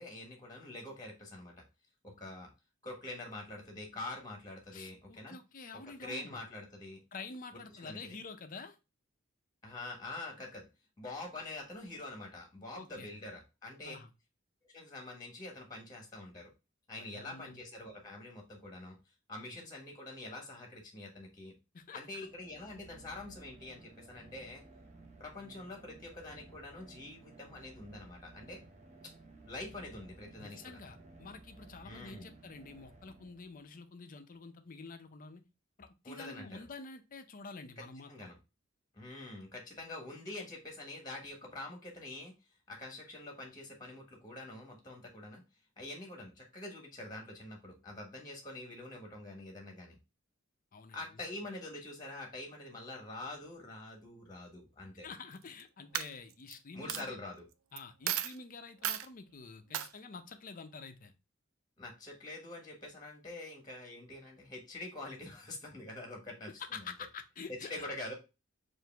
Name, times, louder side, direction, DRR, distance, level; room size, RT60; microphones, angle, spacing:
voice 1, 0.0-1.6 2.0-2.5 2.8-5.4 6.0-7.0 7.5-8.2 9.6-10.7 11.0-13.9 14.7-16.5 16.9-19.0 19.3-21.5 21.9-24.6 25.2-28.6 29.4-30.8 31.8-32.3 36.0-36.6 38.1-38.4 38.9-42.3 42.7-45.4 45.8-50.0 50.9-55.1 56.7-57.5 61.8-66.8 67.5-68.1, left 2 dB, 20° left, 1 dB, 1.3 m, -45 dB
voice 2, 4.7-6.4 7.1-8.8 12.7-13.1 13.8-14.1 17.0-17.7 19.4-19.6 21.7-22.3 30.4-35.4 35.8-38.3 50.7-51.3 55.0-57.2 57.7-61.1 66.6-67.9, left 4 dB, 45° left, 7 dB, 0.6 m, -48 dB
sound 1, 21.9-33.8, right 2 dB, 35° right, 0.8 m, -56 dB
Coin (dropping), 55.3-55.6 55.9-56.5 56.9-57.0 57.8-57.9 58.1-58.4 58.8-59.1 59.7-59.9, right 11 dB, 90° right, 0.4 m, -34 dB
4.7 x 2.6 x 3.3 m, 0.27 s
head